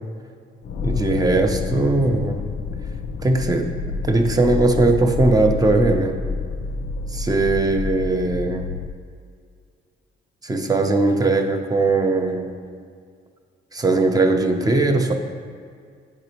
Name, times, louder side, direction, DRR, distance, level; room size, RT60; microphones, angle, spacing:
sound 1, 0.6-8.9, left 4 dB, 55° left, 0.4 m, -28 dB
voice 1, 0.8-2.4 3.2-3.7 4.0-6.2 7.1-8.7 10.4-12.5 13.7-15.1, right 2 dB, 20° right, 5 dB, 0.6 m, -19 dB
9.5 x 3.9 x 2.9 m, 2.1 s
cardioid pair, 90°, 20 cm